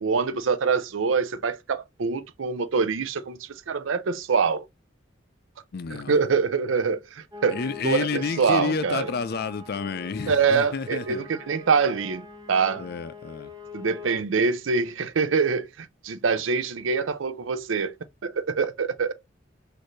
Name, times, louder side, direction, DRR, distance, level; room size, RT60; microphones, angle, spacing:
voice 1, 0.0-4.7 5.9-9.1 10.3-12.8 13.7-17.9 18.2-19.1, right 5 dB, 80° right, 0.5 m, -25 dB
voice 2, 5.7-6.2 7.5-11.2 12.8-13.5, left 5 dB, 55° left, 0.5 m, -30 dB
sound 1, 7.3-14.2, left 3 dB, 20° right, 0.7 m, -44 dB
6.5 x 2.6 x 3.1 m
head